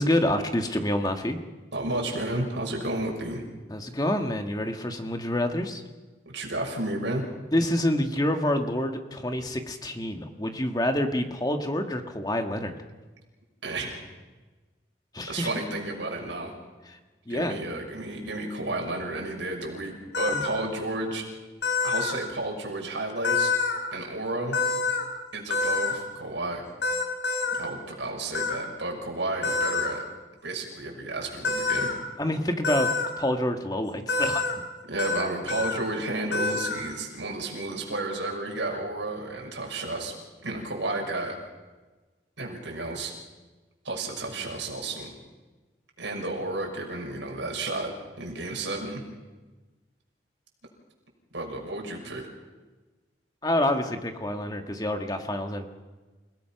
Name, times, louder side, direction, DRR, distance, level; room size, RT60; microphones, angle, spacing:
voice 1, 0.0-1.4 3.7-5.8 7.5-12.8 15.1-15.5 16.9-17.0 17.3-17.6 20.3-20.4 32.2-32.9 33.2-34.5 53.4-55.7, left 1 dB, 20° left, 5 dB, 1.7 m, -27 dB
voice 2, 1.7-3.4 6.3-7.2 13.6-14.0 15.3-16.5 17.3-21.2 21.8-23.5 23.9-24.6 25.3-26.6 27.6-30.0 30.4-31.9 34.9-40.1 40.4-41.3 42.4-43.1 43.8-45.1 46.0-47.9 48.2-49.0 51.3-52.2, right 2 dB, 80° right, 0 dB, 6.1 m, -32 dB
sound 1, 20.1-20.5 21.6-22.1 23.2-23.8 24.5-25.0 25.5-25.9 26.8-27.6 28.3-28.6 29.4-29.9 31.4-31.9 32.6-33.1 34.1-34.5 35.0-35.2 35.5-35.8 36.3-36.8, left 4 dB, 70° left, 3.8 m, -26 dB
29.5 x 18.0 x 5.9 m, 1.2 s
head